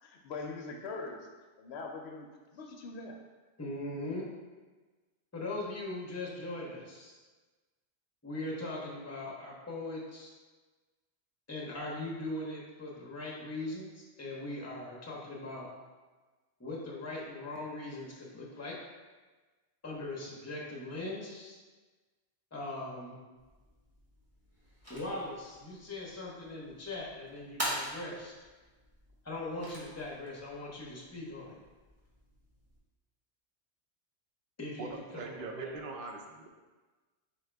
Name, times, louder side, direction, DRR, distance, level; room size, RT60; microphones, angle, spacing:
voice 1, 0.0-1.3 1.6-3.2, left 3 dB, 70° left, 2 dB, 0.8 m, -42 dB
voice 2, 3.6-4.2 5.3-7.2 8.2-10.3 11.5-15.7 16.6-18.7 19.8-21.6 22.5-23.2 24.9-28.3 29.2-31.6 34.6-35.7, left 2 dB, 15° left, -4 dB, 0.7 m, -40 dB
sound 1, 23.3-32.8, equal, 15° right, 1.2 m, -45 dB
voice 3, 34.8-36.5, right 3 dB, 55° right, 3 dB, 0.7 m, -41 dB
4.3 x 3.6 x 3.3 m, 1.3 s
omnidirectional pair, 1.2 m